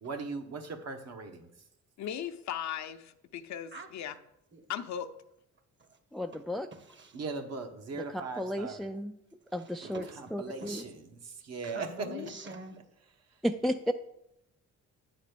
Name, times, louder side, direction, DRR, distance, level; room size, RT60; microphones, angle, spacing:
voice 1, 0.0-1.5 7.1-8.8 9.8-12.3, right 4 dB, 55° right, 1.2 m, -39 dB
voice 2, 2.0-4.2 4.7-5.1 12.1-12.3, left 9 dB, 65° left, 0.7 m, -37 dB
voice 3, 6.1-6.7 8.1-9.1 9.5-10.0 10.3-10.8 13.4-13.9, equal, ahead, 0.3 m, -33 dB
voice 4, 6.7-7.2 9.6-10.2 10.6-10.7 11.6-12.8, right 2 dB, 40° right, 1.2 m, -45 dB
9.0 x 4.2 x 6.8 m
cardioid pair, 90°, 30 cm